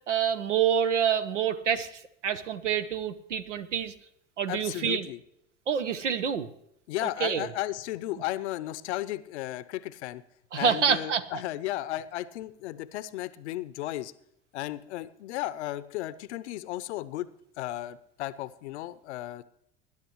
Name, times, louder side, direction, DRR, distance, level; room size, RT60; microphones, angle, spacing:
voice 1, 0.1-3.9 4.4-5.1 5.7-6.5 7.2-7.5 10.5-11.2, right 7 dB, 85° right, 13 dB, 0.9 m, -27 dB
voice 2, 4.5-5.2 6.9-10.2 10.6-14.1 14.5-17.3 17.6-19.4, left 15 dB, 70° left, 16 dB, 0.7 m, -34 dB
20.5 x 10.5 x 3.1 m, 0.76 s
hypercardioid pair, 75°, 35 cm